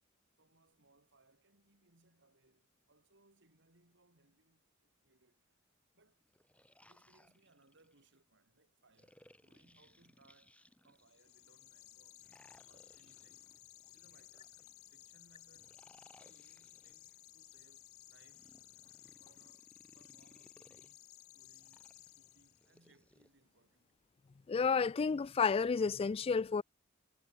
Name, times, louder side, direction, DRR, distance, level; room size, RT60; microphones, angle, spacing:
voice 1, 0.4-5.6 5.9-6.2 6.9-10.6 10.8-12.3 12.6-13.5 13.9-15.8 16.1-18.5 19.2-21.0 21.3-24.0, right 2 dB, 60° right, 6.5 m, -70 dB
sound 1, 6.2-8.1 8.9-11.3 12.2-14.7 15.5-17.1 18.1-20.9 21.6-23.3, left 1 dB, 5° left, 6.2 m, -66 dB
sound 2, 11.0-22.8, left 14 dB, 85° left, 1.7 m, -58 dB
voice 2, 24.5-26.6, left 5 dB, 30° left, 0.3 m, -31 dB
head